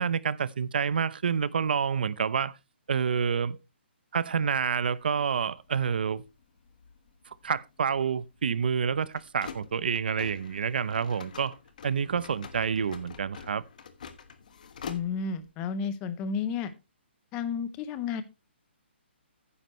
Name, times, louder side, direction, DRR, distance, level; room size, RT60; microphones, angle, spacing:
voice 1, 0.0-2.6 2.9-3.6 4.1-6.2 7.4-11.6 11.8-13.6, right 6 dB, 50° right, 0.7 m, -28 dB
sound 1, 4.7-15.5, left 6 dB, 40° left, 1.3 m, -47 dB
voice 2, 14.9-16.7 17.3-18.2, left 6 dB, 15° left, 0.7 m, -32 dB
12.0 x 9.8 x 3.1 m
hypercardioid pair, 175°, 6 cm